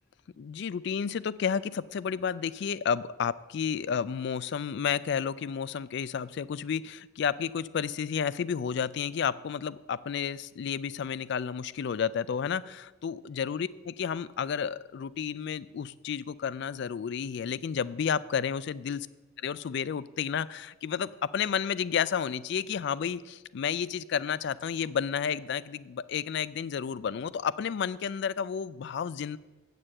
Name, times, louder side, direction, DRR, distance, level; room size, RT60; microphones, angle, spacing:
voice 1, 0.4-19.1 19.4-29.4, left 7 dB, 55° left, 18 dB, 0.3 m, -31 dB
8.7 x 6.7 x 7.5 m, 1.2 s
head